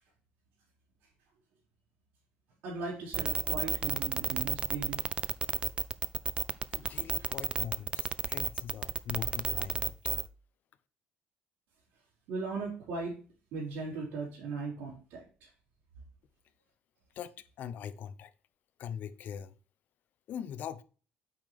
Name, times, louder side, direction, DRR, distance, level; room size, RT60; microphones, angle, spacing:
voice 1, 2.6-5.0 6.8-7.3 12.3-13.2 13.5-15.5, right 4 dB, 80° right, 3.9 m, -38 dB
sound 1, 3.1-10.3, right 6 dB, 30° right, 0.4 m, -31 dB
voice 2, 6.7-9.9 17.2-18.3 18.8-19.5 20.3-20.8, left 8 dB, 55° left, 0.6 m, -41 dB
8.5 x 5.4 x 3.4 m
cardioid pair, 130°, 4 cm